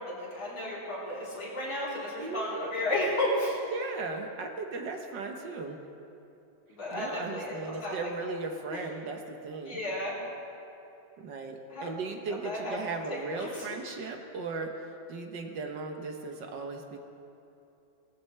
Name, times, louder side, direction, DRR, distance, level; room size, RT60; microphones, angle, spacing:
voice 1, 0.0-3.6 6.7-8.1 8.7-8.8 9.7-10.1 11.7-11.9 12.4-12.8 13.3-13.7, left 1 dB, 75° left, -7 dB, 4.4 m, -33 dB
voice 2, 2.2-2.7 3.7-5.8 6.9-9.8 11.2-14.7 15.1-17.0, right 4 dB, 65° right, 3 dB, 1.5 m, -37 dB
20.0 x 13.0 x 3.3 m, 2.8 s
omnidirectional pair, 2.3 m